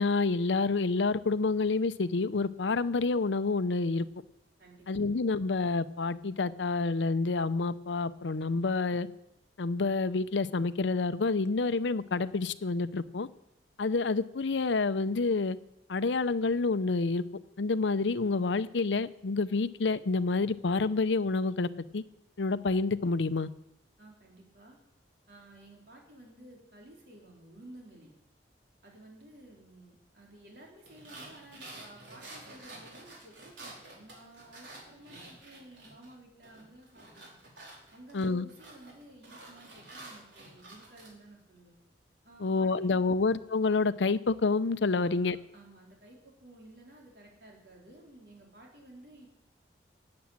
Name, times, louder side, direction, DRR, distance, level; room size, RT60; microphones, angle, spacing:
voice 1, 0.0-4.1 4.9-9.1 9.6-13.3 13.8-15.6 15.9-17.2 17.6-22.0 22.4-23.5 38.1-38.5 42.4-45.4, left 3 dB, 90° left, 14 dB, 0.6 m, -28 dB
voice 2, 24.0-24.8 25.3-28.1 28.8-37.4 37.9-41.8 42.2-43.1 45.0-49.3, right 1 dB, 65° right, -1 dB, 4.0 m, -54 dB
sound 1, 30.9-36.1 36.4-41.1, right 2 dB, 85° right, 4.6 m, -49 dB
12.0 x 8.6 x 8.7 m, 0.82 s
head